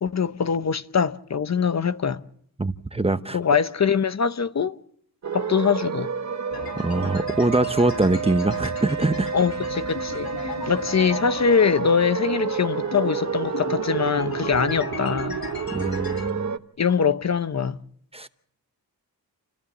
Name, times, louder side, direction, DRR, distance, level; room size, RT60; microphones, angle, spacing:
voice 1, 0.0-2.2 3.3-4.8 5.3-6.1 9.3-15.4 16.8-17.8, left 6 dB, 50° left, 0.8 m, -23 dB
voice 2, 2.6-3.4 6.8-9.3 15.7-16.5 18.1-18.3, right 2 dB, 15° right, 0.8 m, -23 dB
Siren Is Low, 5.2-16.6, right 6 dB, 50° right, 1.1 m, -30 dB
sound 1, 6.5-16.3, left 5 dB, 80° left, 1.9 m, -37 dB
29.0 x 15.5 x 7.3 m
wide cardioid pair, 160°, 36 cm